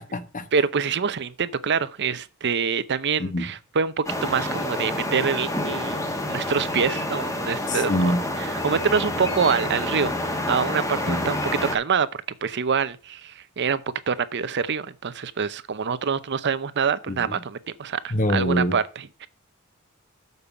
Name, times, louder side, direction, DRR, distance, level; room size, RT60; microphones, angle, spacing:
voice 1, 0.0-0.5 3.2-3.5 7.7-8.2 11.1-11.3 17.1-17.4 18.1-18.8, left 1 dB, 35° left, 1.0 m, -25 dB
voice 2, 0.5-6.0 6.3-11.4 11.7-12.1 12.4-13.8 14.1-19.3, right 6 dB, 55° right, 0.6 m, -26 dB
sound 1, 4.1-11.8, left 1 dB, 15° left, 1.2 m, -28 dB
6.8 x 5.3 x 7.0 m
head